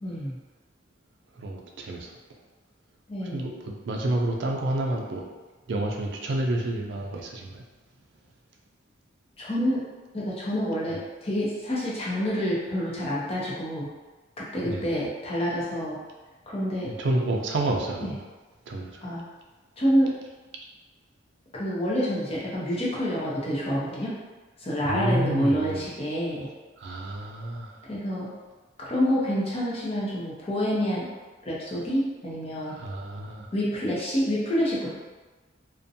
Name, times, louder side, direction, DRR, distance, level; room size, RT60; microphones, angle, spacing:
voice 1, 0.0-0.4 3.1-3.5 9.4-9.8 10.1-13.9 14.4-16.0 16.5-16.9 18.0-18.1 19.0-19.2 19.8-20.2 21.5-24.2 24.6-26.5 27.9-28.3 28.8-31.1 31.4-32.8 33.5-34.9, equal, 30° left, -6 dB, 0.6 m, -27 dB
voice 2, 1.4-2.1 3.3-5.2 5.7-7.6 14.6-14.9 16.9-18.2 18.7-19.0 24.8-25.8 26.8-27.7 32.7-33.5, right 1 dB, 65° right, 0 dB, 0.4 m, -29 dB
2.6 x 2.1 x 2.7 m, 1.2 s
head